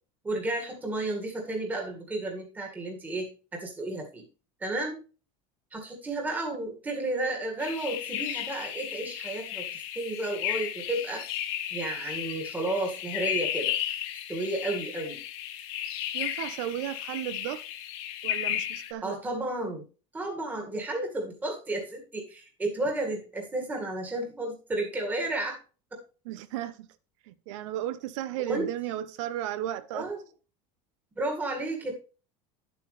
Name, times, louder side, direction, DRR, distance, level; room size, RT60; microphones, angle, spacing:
voice 1, 0.2-4.2 4.6-5.0 5.7-11.2 11.7-13.7 14.3-15.2 19.0-19.9 20.1-25.6 25.9-26.0 28.5-28.7 29.9-30.2 31.2-31.9, right 2 dB, 10° right, 2.0 m, -32 dB
sound 1, 7.6-18.9, left 11 dB, 55° left, 1.5 m, -34 dB
voice 2, 16.1-17.6 18.2-19.2 26.2-26.9 27.3-30.1, right 12 dB, 65° right, 1.0 m, -34 dB
11.0 x 8.2 x 3.3 m
cardioid pair, 175°, 17 cm